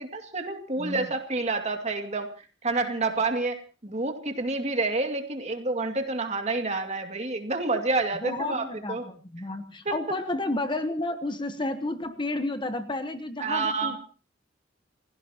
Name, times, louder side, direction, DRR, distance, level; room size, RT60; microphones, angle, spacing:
voice 1, 0.0-2.3 2.6-3.6 3.8-9.0 9.9-10.0 13.4-14.0, right 3 dB, 35° right, 5 dB, 2.4 m, -28 dB
voice 2, 0.8-1.1 8.2-14.0, left 2 dB, 25° left, 9 dB, 1.2 m, -31 dB
28.5 x 17.0 x 3.0 m, 0.37 s
head